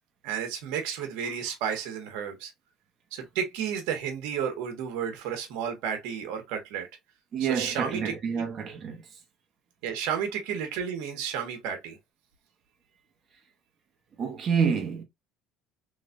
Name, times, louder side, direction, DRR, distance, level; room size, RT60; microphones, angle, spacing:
voice 1, 0.2-2.5 3.1-6.9 7.4-8.4 9.8-12.0, right 8 dB, 80° right, 1.1 m, -32 dB
voice 2, 7.3-9.2 14.2-15.0, right 6 dB, 45° right, 1.0 m, -28 dB
3.2 x 3.2 x 2.5 m
supercardioid pair, 95°, 0 cm